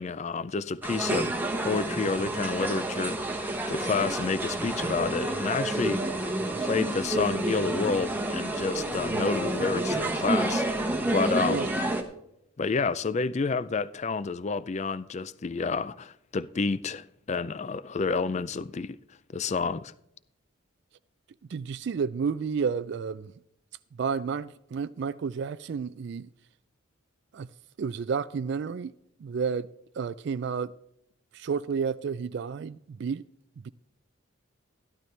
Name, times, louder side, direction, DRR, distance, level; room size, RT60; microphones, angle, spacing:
voice 1, 0.0-6.3 6.6-10.7 11.1-11.7 12.6-19.0 19.3-19.9, left 4 dB, 35° left, 0.4 m, -30 dB
sound 1, 0.8-12.0, right 1 dB, 10° right, 1.0 m, -29 dB
voice 2, 21.5-23.3 24.0-26.3 27.3-27.5 27.8-28.9 29.2-29.7 29.9-30.7 31.3-33.2 33.6-33.7, right 6 dB, 55° right, 0.3 m, -31 dB
14.0 x 12.0 x 3.3 m
head